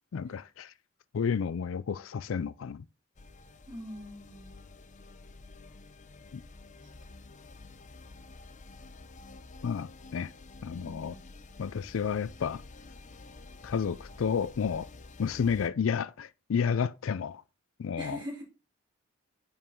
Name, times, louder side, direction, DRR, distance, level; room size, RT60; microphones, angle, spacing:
voice 1, 0.1-0.7 1.1-2.8 6.3-6.4 9.6-10.3 10.6-11.1 11.6-12.6 13.6-14.9 15.2-17.4 17.8-18.2, left 6 dB, 80° left, 0.4 m, -31 dB
sound 1, 3.2-15.7, left 3 dB, 40° left, 0.6 m, -50 dB
voice 2, 3.7-4.6 10.7-11.4 18.0-18.4, equal, 25° right, 3.3 m, -42 dB
9.3 x 5.3 x 3.7 m
head